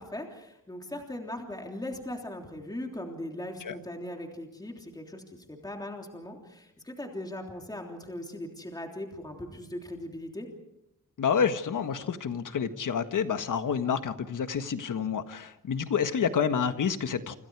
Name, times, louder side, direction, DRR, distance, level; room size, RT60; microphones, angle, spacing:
voice 1, 0.0-10.5, left 1 dB, 10° left, 2 dB, 3.3 m, -39 dB
voice 2, 11.2-17.4, left 7 dB, 75° left, 9 dB, 1.6 m, -28 dB
28.5 x 27.0 x 4.8 m, 0.83 s
wide cardioid pair, 135°, 32 cm